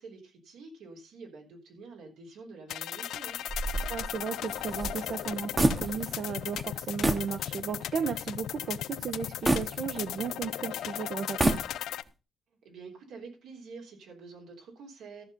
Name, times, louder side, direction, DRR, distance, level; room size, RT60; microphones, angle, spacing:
voice 1, 0.0-3.4 12.6-15.2, right 4 dB, 85° right, 1 dB, 3.7 m, -47 dB
sound 1, 2.7-12.0, left 12 dB, 85° left, 0.4 m, -37 dB
sound 2, 3.5-6.3 6.5-6.7 7.0-7.3 7.8-7.9 9.5-10.5 11.2-12.1, right 2 dB, 20° right, 1.1 m, -29 dB
voice 2, 3.9-11.6, right 6 dB, 55° right, 9 dB, 0.9 m, -35 dB
13.5 x 6.1 x 5.2 m, 0.31 s
cardioid pair, 115°, 0 cm